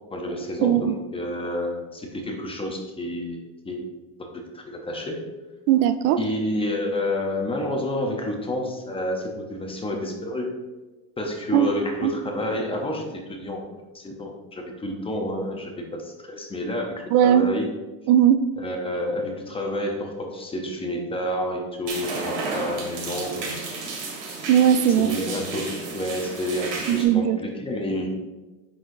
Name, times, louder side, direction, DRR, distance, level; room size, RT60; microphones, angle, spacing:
voice 1, 0.1-3.9 4.3-5.2 6.2-10.5 11.2-13.6 13.9-17.7 18.6-23.5 25.0-28.1, left 1 dB, 10° left, 1 dB, 0.6 m, -29 dB
voice 2, 0.6-1.0 5.7-6.2 11.5-11.7 12.0-12.1 17.1-17.5 18.1-18.4 24.5-25.2 26.9-27.4, right 10 dB, 65° right, 11 dB, 0.6 m, -18 dB
sound 1, 21.9-27.0, right 3 dB, 90° right, 2.1 m, -32 dB
7.7 x 5.8 x 2.6 m, 1.2 s
supercardioid pair, 140°, 48 cm